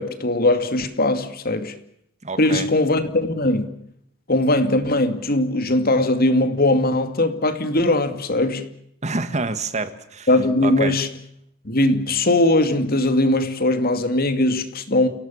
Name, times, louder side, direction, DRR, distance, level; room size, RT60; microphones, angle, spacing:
voice 1, 0.0-1.7 2.4-3.7 4.3-8.7 10.3-11.1 11.6-15.1, left 1 dB, 45° left, 2.4 m, -20 dB
voice 2, 2.2-2.7 9.0-10.3 10.6-11.0, right 3 dB, 35° right, 1.7 m, -27 dB
29.5 x 18.0 x 7.2 m
head